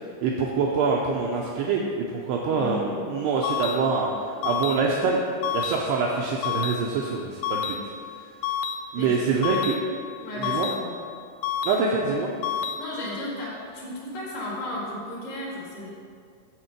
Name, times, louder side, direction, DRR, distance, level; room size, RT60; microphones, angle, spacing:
voice 1, 0.2-5.2 5.5-7.8 8.9-9.8 10.4-10.7 11.6-12.3, right 4 dB, 85° right, -1 dB, 2.4 m, -25 dB
voice 2, 2.5-3.2 9.0-9.2 10.2-10.9 12.5-15.9, left 1 dB, 65° left, -4 dB, 3.6 m, -34 dB
sound 1, 3.4-3.7 4.4-4.7 5.4-5.7 6.4-6.7 7.4-7.7 8.4-8.7 9.4-9.7 10.4-10.7 11.4-11.7 12.4-12.7, left 8 dB, 85° left, 2.9 m, -28 dB
9.5 x 4.5 x 7.3 m, 2.2 s
omnidirectional pair, 5.5 m